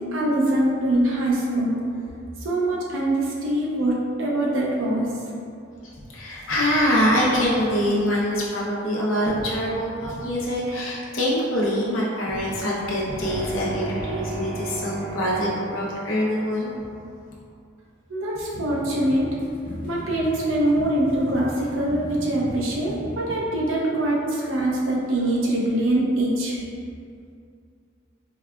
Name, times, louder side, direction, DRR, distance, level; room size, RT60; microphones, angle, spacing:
voice 1, 0.0-1.8 2.4-5.1 18.1-19.3 19.8-26.6, right 1 dB, 85° right, -4 dB, 0.7 m, -23 dB
voice 2, 5.8-16.8, equal, 85° left, -5 dB, 0.7 m, -24 dB
sound 1, 13.2-16.6, right 3 dB, 5° left, 0.7 m, -33 dB
sound 2, 18.3-23.4, equal, 50° left, 0.5 m, -38 dB
4.6 x 2.2 x 2.3 m, 2.4 s
head